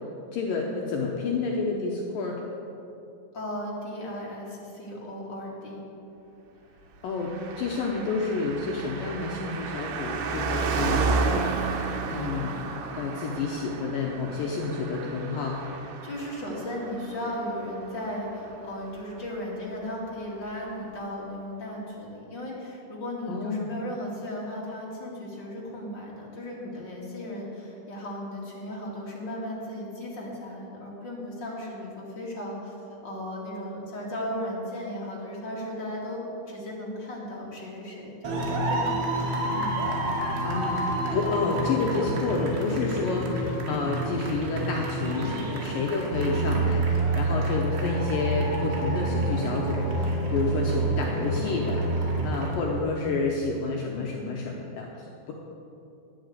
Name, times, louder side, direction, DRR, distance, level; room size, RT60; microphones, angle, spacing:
voice 1, 0.3-2.4 7.0-12.6 12.9-15.6 23.3-23.7 40.4-55.3, left 4 dB, 85° left, -1 dB, 1.9 m, -30 dB
voice 2, 3.3-5.8 16.0-39.0 39.5-39.8, left 1 dB, 35° left, -5 dB, 2.1 m, -36 dB
Car passing by, 7.2-19.1 19.3-19.4, right 4 dB, 80° right, 3.4 m, -32 dB
sound 1, 38.2-52.5, right 2 dB, 65° right, 3.7 m, -28 dB
11.5 x 9.1 x 8.1 m, 2.8 s
omnidirectional pair, 5.4 m